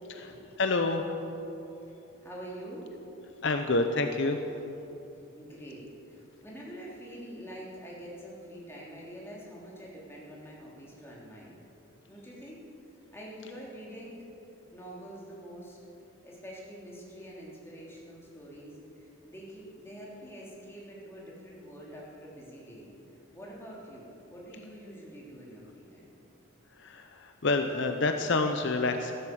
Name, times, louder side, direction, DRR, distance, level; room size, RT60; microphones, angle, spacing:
voice 1, 0.6-1.0 3.4-4.4 26.8-29.1, left 3 dB, 60° left, 6 dB, 0.8 m, -28 dB
voice 2, 2.2-2.9 5.4-11.6 12.1-12.6 13.1-14.3 14.7-15.8 16.2-22.9 23.3-26.1, equal, 10° left, -5 dB, 3.2 m, -46 dB
14.5 x 12.5 x 7.9 m, 2.9 s
head